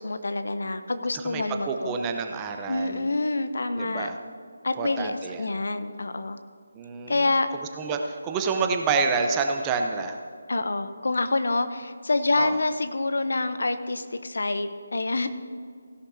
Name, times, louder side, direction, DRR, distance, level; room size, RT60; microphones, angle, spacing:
voice 1, 0.0-1.9 2.7-4.1 4.6-6.4 7.1-7.5 10.5-15.3, left 2 dB, 65° left, 10 dB, 0.8 m, -27 dB
voice 2, 1.1-3.1 3.8-4.2 4.8-5.5 6.7-10.2 12.4-12.6, right 4 dB, 15° right, 4 dB, 0.7 m, -28 dB
16.5 x 11.0 x 2.8 m, 2.1 s
figure-of-eight pair, 155°, 0 cm